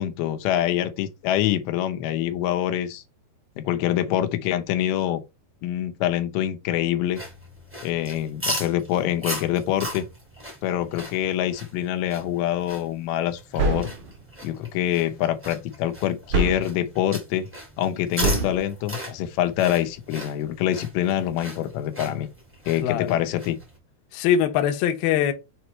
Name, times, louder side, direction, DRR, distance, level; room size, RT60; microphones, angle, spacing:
voice 1, 0.0-3.0 3.6-5.2 5.6-7.2 7.8-10.1 10.6-13.9 14.4-17.5 17.8-22.3 22.7-23.6, left 12 dB, 90° left, 3.0 m, -25 dB
sound 1, 7.1-23.8, equal, 10° right, 0.7 m, -38 dB
sound 2, 13.6-14.1 16.3-16.8 18.2-18.6, right 3 dB, 60° right, 2.2 m, -24 dB
voice 2, 22.8-23.2 24.1-25.3, left 9 dB, 75° left, 2.4 m, -22 dB
7.3 x 3.1 x 4.3 m
omnidirectional pair, 4.8 m